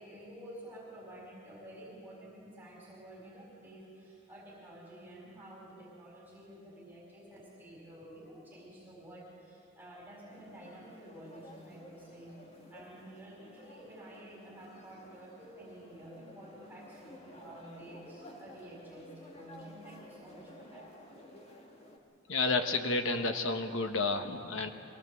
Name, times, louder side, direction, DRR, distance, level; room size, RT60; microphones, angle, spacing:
voice 1, 0.0-21.1, right 1 dB, 10° right, -4 dB, 4.5 m, -51 dB
sound 1, 10.3-22.0, left 1 dB, 30° left, 1.7 m, -53 dB
voice 2, 22.3-24.7, left 3 dB, 70° left, 6 dB, 1.3 m, -31 dB
23.0 x 17.0 x 7.8 m, 2.7 s
head